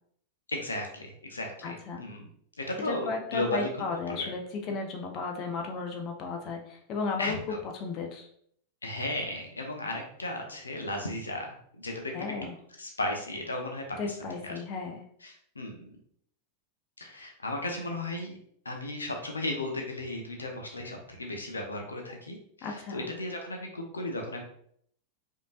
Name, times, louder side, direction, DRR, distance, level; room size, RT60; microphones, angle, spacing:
voice 1, 0.5-2.3 2.6-3.7 4.1-4.3 7.2-7.6 8.8-12.3 12.8-14.6 15.2-15.9 17.0-18.4 18.6-24.4, left 1 dB, 75° left, 2 dB, 0.7 m, -35 dB
voice 2, 1.6-2.0 2.9-8.3 12.1-12.5 14.0-15.0 22.6-23.1, left 4 dB, 35° left, 2 dB, 0.6 m, -34 dB
5.1 x 2.8 x 2.4 m, 0.66 s
figure-of-eight pair, 90°, 0 cm